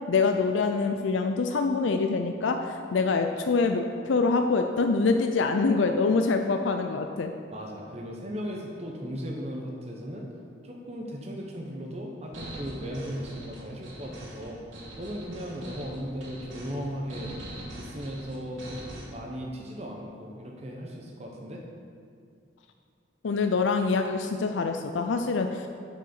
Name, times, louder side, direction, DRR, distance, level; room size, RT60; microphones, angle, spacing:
voice 1, 0.1-7.3 23.2-25.7, left 4 dB, 75° left, 6 dB, 0.4 m, -25 dB
voice 2, 7.5-10.3 10.6-14.6 15.0-17.3 17.7-21.6, equal, 35° right, -1 dB, 0.8 m, -37 dB
sound 1, 12.3-19.0, right 1 dB, 85° right, 2.3 m, -42 dB
6.7 x 6.4 x 6.7 m, 2.3 s
head